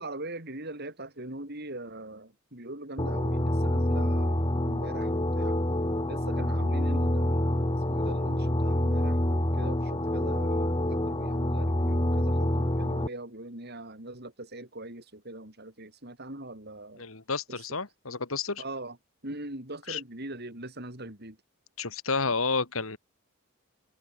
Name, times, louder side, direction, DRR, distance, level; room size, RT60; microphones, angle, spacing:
voice 1, 0.0-5.6 6.1-17.1 17.5-17.7 18.6-19.0 19.2-21.4, right 2 dB, 50° right, 6.5 m, -42 dB
sound 1, 3.0-13.1, left 1 dB, 25° left, 1.9 m, -27 dB
voice 2, 17.0-18.6 19.9-20.0 21.8-23.0, left 4 dB, 75° left, 2.5 m, -30 dB
head